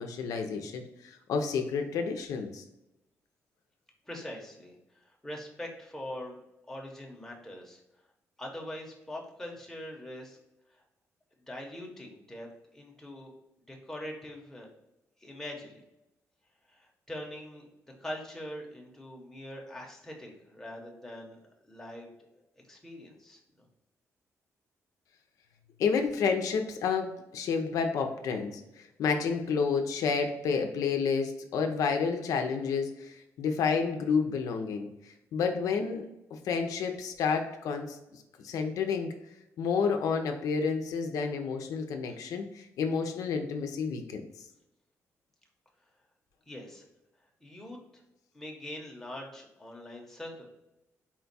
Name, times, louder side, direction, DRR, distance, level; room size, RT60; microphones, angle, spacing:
voice 1, 0.0-2.6 25.8-34.9 35.3-36.1 36.3-39.1 39.6-44.2, left 5 dB, 80° left, 4 dB, 0.5 m, -30 dB
voice 2, 4.1-6.4 6.7-7.8 8.4-10.4 11.5-13.3 13.7-14.7 15.2-15.8 16.7-17.6 18.0-21.4 21.7-22.3 22.6-23.7 42.1-42.2 46.4-46.8 47.4-48.0 48.3-50.4, left 1 dB, 5° left, -1 dB, 0.9 m, -43 dB
4.3 x 2.3 x 4.0 m, 0.92 s
cardioid pair, 130°, 6 cm